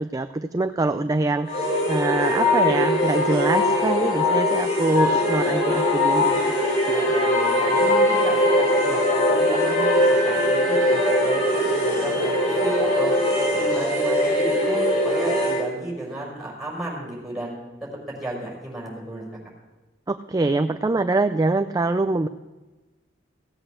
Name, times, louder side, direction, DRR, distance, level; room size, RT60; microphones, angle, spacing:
voice 1, 0.0-6.5 20.1-22.3, right 2 dB, 20° right, 8 dB, 0.4 m, -24 dB
sound 1, 1.5-15.7, left 1 dB, 35° left, 3.5 m, -21 dB
voice 2, 6.8-9.0 9.3-13.1 13.5-19.2, right 1 dB, ahead, -4 dB, 5.5 m, -33 dB
16.5 x 8.1 x 6.4 m, 1.2 s
head